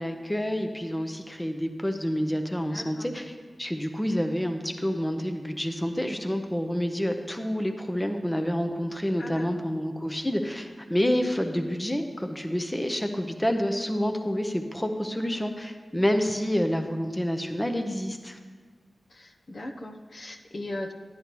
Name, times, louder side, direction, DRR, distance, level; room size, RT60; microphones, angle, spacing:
voice 1, 0.0-18.4, equal, 15° left, 5 dB, 0.7 m, -28 dB
voice 2, 2.7-3.1 9.2-9.5 19.1-20.9, left 1 dB, 55° left, 3 dB, 0.8 m, -38 dB
11.0 x 10.5 x 3.0 m, 1.5 s
cardioid pair, 55°, 0 cm